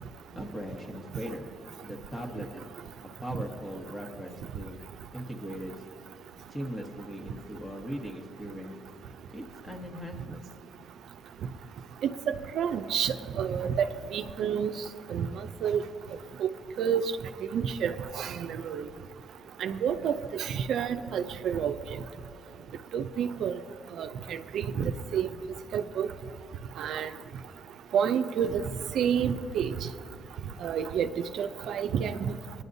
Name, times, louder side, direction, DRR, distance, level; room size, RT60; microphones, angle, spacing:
voice 1, 0.3-1.5 1.8-2.6 3.2-4.8 5.1-5.7 6.5-8.7 9.3-10.4, equal, 15° left, 1 dB, 1.2 m, -39 dB
voice 2, 12.0-14.7 15.1-15.8 16.4-16.5 16.8-17.1 17.5-18.9 19.6-21.7 22.9-23.6 24.0-25.3 25.7-26.1 26.8-27.1 27.9-28.6 28.9-29.7 30.6-31.1 31.4-32.3, right 8 dB, 75° right, 9 dB, 0.5 m, -29 dB
20.0 x 9.9 x 2.7 m, 2.5 s
cardioid pair, 90°, 0 cm